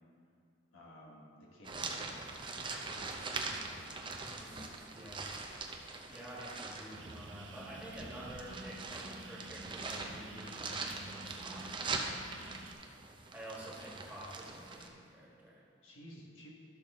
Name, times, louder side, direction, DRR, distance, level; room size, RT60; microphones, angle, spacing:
voice 1, 0.7-2.2 2.8-3.6 15.8-16.5, equal, 85° left, -3 dB, 1.8 m, -54 dB
sound 1, 1.6-14.9, right 3 dB, 25° right, 0.6 m, -42 dB
voice 2, 4.2-5.3 6.1-11.7 13.3-15.6, right 1 dB, 10° right, -6 dB, 1.7 m, -49 dB
sound 2, 6.9-12.7, right 2 dB, 75° right, 0.7 m, -50 dB
12.5 x 6.4 x 3.7 m, 2.5 s
head